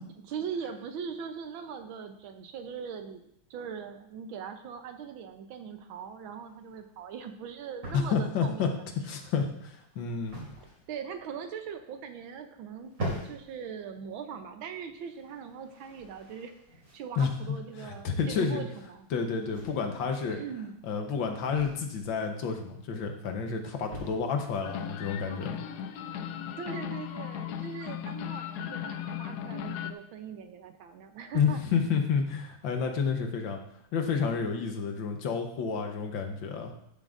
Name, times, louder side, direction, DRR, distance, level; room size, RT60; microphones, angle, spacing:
voice 1, 0.2-3.2 3.5-8.6 10.0-10.1 10.9-12.9 13.2-16.5 16.9-19.1 20.3-20.7 26.6-31.6, right 7 dB, 75° right, 7 dB, 1.5 m, -40 dB
sound 1, 6.0-25.7, right 1 dB, 60° right, 3.7 m, -46 dB
voice 2, 7.9-8.7 9.0-10.4 17.2-18.6 19.1-20.4 20.8-25.6 31.3-33.6 33.9-36.7, left 6 dB, 70° left, 4 dB, 1.6 m, -30 dB
sound 2, 24.6-29.9, left 9 dB, 90° left, 0.8 m, -37 dB
11.5 x 7.5 x 2.5 m, 0.74 s
omnidirectional pair, 2.3 m